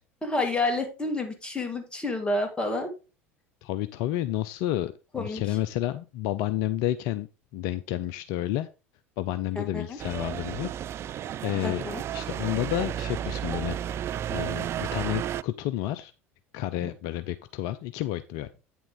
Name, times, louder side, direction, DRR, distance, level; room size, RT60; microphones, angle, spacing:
voice 1, 0.2-2.9 5.1-5.4 9.6-10.0 11.6-12.0 16.8-16.9, left 2 dB, 15° left, 3 dB, 2.8 m, -29 dB
voice 2, 3.6-4.9 5.2-7.3 7.5-8.7 9.2-10.7 11.0-11.2 11.4-13.8 14.3-16.1 16.5-18.5, left 13 dB, 55° left, 13 dB, 0.5 m, -30 dB
sound 1, 10.0-15.4, right 10 dB, 35° right, 0.3 m, -32 dB
8.8 x 7.0 x 3.7 m, 0.30 s
figure-of-eight pair, 70°, 7 cm